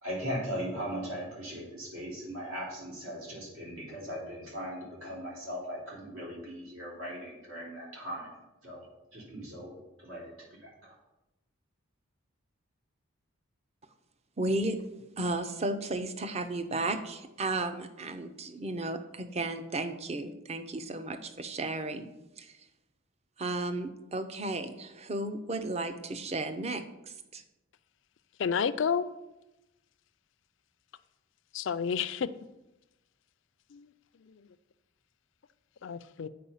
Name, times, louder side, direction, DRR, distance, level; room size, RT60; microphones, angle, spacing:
voice 1, 0.0-8.3 8.6-8.9 9.1-9.7 10.0-10.9, equal, 80° right, -4 dB, 3.4 m, -39 dB
voice 2, 14.4-14.8 15.2-22.1 22.4-22.5 23.4-26.8 27.3-27.4, right 2 dB, 30° right, 9 dB, 0.6 m, -34 dB
voice 3, 28.4-29.1 31.5-32.3 33.7-33.9 35.8-36.3, left 7 dB, 60° left, 14 dB, 0.4 m, -30 dB
8.4 x 4.7 x 5.6 m, 0.96 s
head